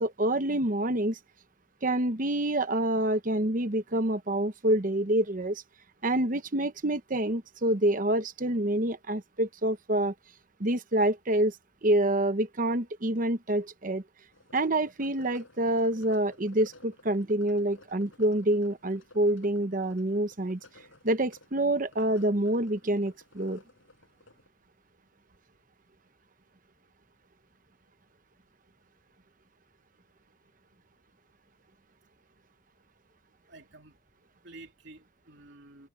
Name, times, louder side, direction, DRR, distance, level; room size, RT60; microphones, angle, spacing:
voice 1, 0.0-1.2 1.8-5.6 6.0-10.1 10.6-11.5 11.8-14.0 14.5-20.6 21.0-23.6, right 1 dB, 45° right, 1.0 m, -27 dB
sound 1, 14.3-24.5, left 2 dB, 90° left, 5.6 m, -56 dB
voice 2, 33.5-34.0 34.4-35.9, right 2 dB, 65° right, 3.3 m, -50 dB
open air
head